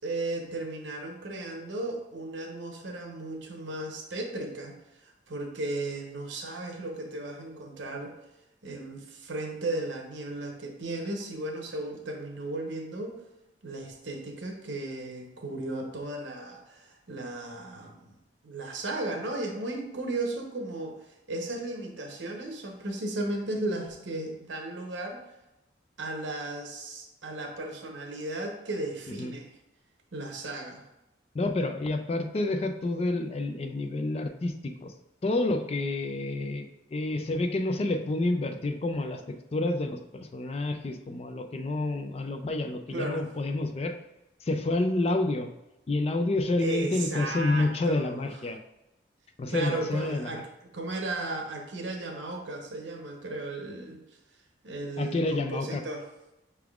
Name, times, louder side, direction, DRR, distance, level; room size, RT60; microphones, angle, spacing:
voice 1, 0.0-4.7 5.0-8.1 8.6-13.2 13.6-18.2 18.4-25.2 26.0-29.5 30.1-30.8 42.9-43.2 46.6-48.2 49.5-50.4 50.7-54.0 54.6-56.1, right 2 dB, 80° right, 2 dB, 0.9 m, -35 dB
voice 2, 31.3-34.9 35.2-43.9 44.4-45.5 45.9-48.6 49.4-50.3 55.0-55.8, left 2 dB, 35° left, 6 dB, 0.3 m, -29 dB
5.8 x 3.5 x 2.4 m, 0.93 s
head